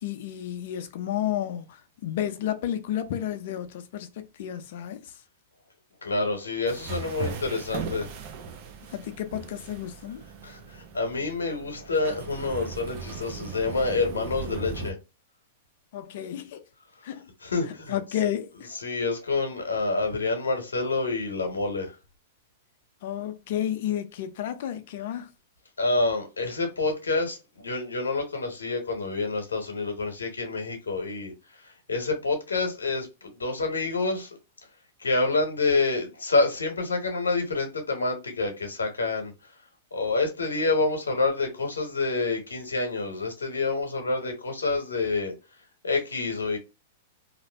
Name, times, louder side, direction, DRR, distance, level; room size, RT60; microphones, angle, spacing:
voice 1, 0.0-5.2 8.9-10.2 15.9-16.6 17.0-17.3 17.9-18.7 23.0-25.3, left 11 dB, 60° left, 0.5 m, -31 dB
voice 2, 6.0-8.1 10.4-15.0 17.4-18.3 18.5-21.9 25.8-31.3 31.6-34.3 35.0-39.3 39.9-45.3 45.8-46.6, left 3 dB, 90° left, 0.9 m, -28 dB
sound 1, 6.7-14.9, right 5 dB, 50° right, 0.6 m, -38 dB
2.5 x 2.1 x 3.3 m
hypercardioid pair, 115°, 0 cm